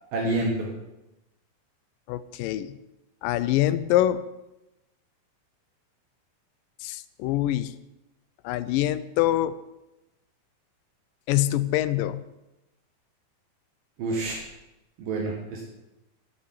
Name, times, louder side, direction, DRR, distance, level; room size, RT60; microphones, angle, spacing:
voice 1, 0.1-0.7 14.0-14.4 15.0-15.7, right 2 dB, 75° right, -1 dB, 3.4 m, -28 dB
voice 2, 2.1-2.8 3.2-4.2 6.8-7.7 8.4-9.5 11.3-12.2, left 13 dB, 80° left, 15 dB, 2.2 m, -25 dB
11.5 x 8.3 x 9.3 m, 0.96 s
omnidirectional pair, 4.1 m